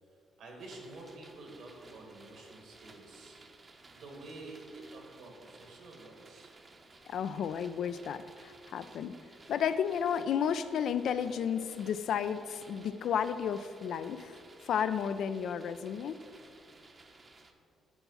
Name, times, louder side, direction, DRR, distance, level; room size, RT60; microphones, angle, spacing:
voice 1, 0.4-3.4 3.9-6.6, right 2 dB, 75° right, 0 dB, 1.9 m, -49 dB
sound 1, 0.6-17.5, right 3 dB, 35° right, 0.8 m, -57 dB
voice 2, 7.1-9.2 9.5-14.4 14.6-16.2, left 8 dB, 70° left, 12 dB, 0.3 m, -32 dB
10.5 x 4.6 x 4.1 m, 2.5 s
cardioid pair, 90°, 0 cm